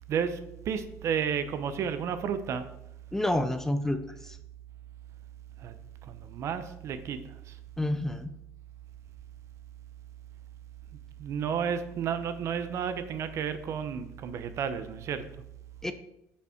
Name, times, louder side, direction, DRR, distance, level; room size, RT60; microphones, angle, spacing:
voice 1, 0.1-2.7 5.6-5.7 6.0-7.6 11.2-15.2, right 7 dB, 50° right, 11 dB, 0.7 m, -32 dB
voice 2, 3.1-4.4 7.8-8.3 15.8-15.9, left 1 dB, 5° left, 9 dB, 0.5 m, -29 dB
6.7 x 5.5 x 5.0 m, 0.84 s
cardioid pair, 125°, 6 cm